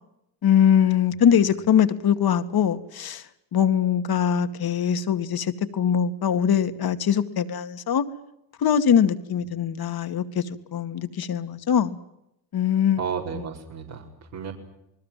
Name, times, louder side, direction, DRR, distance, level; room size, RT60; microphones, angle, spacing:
voice 1, 0.4-3.3 3.5-8.0 8.6-12.0 12.5-13.0, left 8 dB, 50° left, 2.1 m, -22 dB
voice 2, 13.0-14.5, right 6 dB, 75° right, 4.8 m, -32 dB
28.5 x 20.5 x 7.6 m
hypercardioid pair, 65°, 47 cm